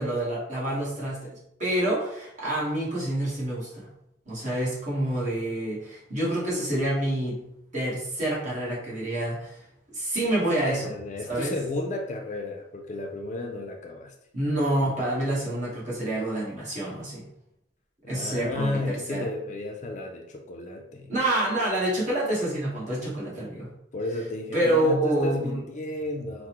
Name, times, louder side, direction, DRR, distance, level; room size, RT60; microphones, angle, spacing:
voice 1, 0.0-3.9 4.3-7.4 7.7-9.6 9.9-10.9 11.3-11.5 14.3-17.3 18.1-19.2 21.1-23.7 24.5-25.6, right 1 dB, 40° right, -6 dB, 1.2 m, -27 dB
voice 2, 10.6-14.1 18.0-21.1 23.9-26.5, left 2 dB, 40° left, 3 dB, 0.4 m, -33 dB
3.5 x 2.0 x 2.9 m, 0.80 s
head